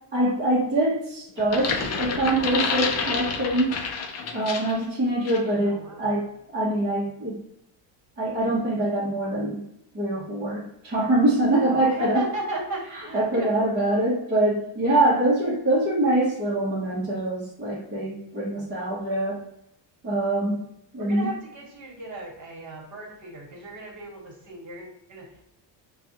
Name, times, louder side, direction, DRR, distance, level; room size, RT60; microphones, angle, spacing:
voice 1, 0.1-3.8 4.3-6.3 6.5-7.4 8.2-9.6 9.9-12.2 13.1-19.4 20.0-20.7 20.9-21.3, right 1 dB, 20° right, -8 dB, 1.0 m, -24 dB
sound 1, 1.4-4.8 5.2-5.5, left 5 dB, 35° left, 0.4 m, -29 dB
voice 2, 5.6-6.1 11.7-13.5 21.0-25.4, right 2 dB, 40° right, -1 dB, 1.5 m, -36 dB
5.8 x 2.3 x 2.8 m, 0.79 s
cardioid pair, 150°, 48 cm